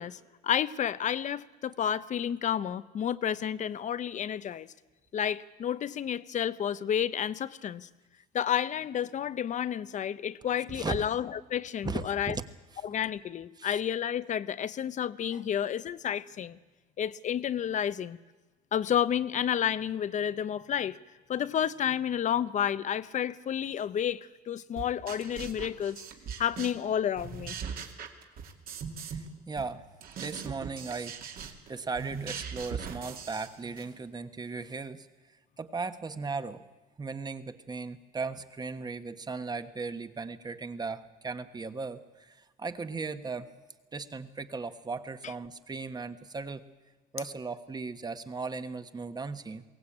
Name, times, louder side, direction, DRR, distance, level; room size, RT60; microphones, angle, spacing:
voice 1, 0.0-4.7 5.1-7.9 8.3-12.4 12.8-16.6 17.0-18.2 18.7-21.0 21.3-26.0 26.4-27.6, left 9 dB, 45° left, 16 dB, 0.8 m, -30 dB
voice 2, 10.7-11.0 11.8-12.0 12.3-12.4 12.7-12.8 13.6-13.8 29.0-29.8 30.2-35.1 35.6-36.6 37.0-43.5 43.9-46.6 47.1-49.6, right 4 dB, 25° right, 10 dB, 1.3 m, -37 dB
sound 1, 24.8-26.9 27.1-29.3 29.6-33.9, right 6 dB, 60° right, 2.6 m, -40 dB
22.0 x 17.5 x 8.8 m, 1.2 s
cardioid pair, 110°, 17 cm